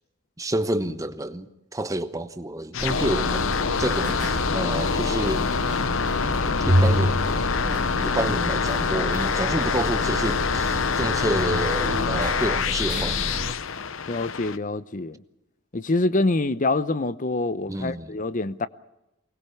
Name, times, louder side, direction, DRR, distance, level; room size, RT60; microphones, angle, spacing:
voice 1, 0.4-1.5 1.7-3.5 3.8-5.5 6.6-7.1 8.0-13.4 17.7-18.1, right 1 dB, 15° right, 1.1 m, -29 dB
sound 1, 2.7-14.6, left 5 dB, 65° left, 0.8 m, -26 dB
sound 2, 2.8-13.5, equal, 35° right, 1.6 m, -29 dB
voice 2, 14.1-15.2 15.7-18.7, left 2 dB, 40° left, 0.8 m, -25 dB
24.0 x 20.0 x 7.0 m
head